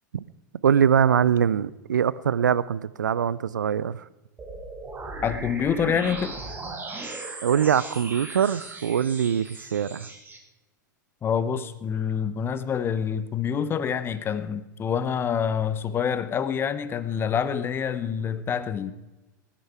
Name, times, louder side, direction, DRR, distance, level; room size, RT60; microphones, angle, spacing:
voice 1, 0.6-4.0 7.4-10.1, right 8 dB, 70° right, 20 dB, 0.5 m, -23 dB
sound 1, 4.4-10.4, right 3 dB, 20° right, 2.3 m, -37 dB
voice 2, 5.2-6.4 11.2-18.9, left 7 dB, 20° left, 14 dB, 0.9 m, -27 dB
19.0 x 10.0 x 4.6 m, 1.1 s
figure-of-eight pair, 90°, 10 cm